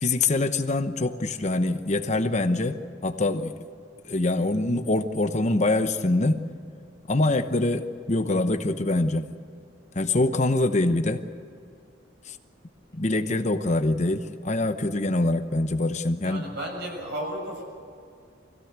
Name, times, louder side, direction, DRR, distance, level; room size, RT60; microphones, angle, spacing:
voice 1, 0.0-3.6 4.0-6.5 7.1-9.3 9.9-11.2 12.3-12.4 12.9-16.5, left 2 dB, 40° left, 9 dB, 0.9 m, -24 dB
voice 2, 16.2-17.6, right 1 dB, 60° right, 0 dB, 7.3 m, -33 dB
24.5 x 16.5 x 8.2 m, 2.3 s
head